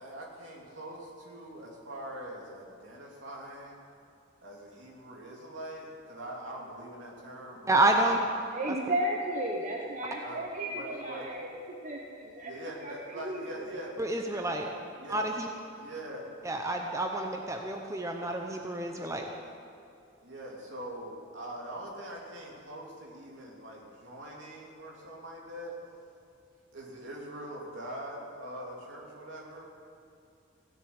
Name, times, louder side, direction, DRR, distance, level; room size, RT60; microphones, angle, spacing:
voice 1, 0.0-3.8 4.4-8.3 10.2-10.4 10.7-11.4 12.4-14.1 15.0-15.3 15.7-16.4 20.2-25.7 26.7-29.7, right 1 dB, 70° right, -2 dB, 3.1 m, -43 dB
voice 2, 7.7-8.2 14.0-14.6 15.1-15.5 16.4-19.2, right 2 dB, 15° right, 2 dB, 0.8 m, -28 dB
voice 3, 8.5-13.8, right 1 dB, 40° right, 0 dB, 1.0 m, -35 dB
16.5 x 7.1 x 8.8 m, 2.6 s
head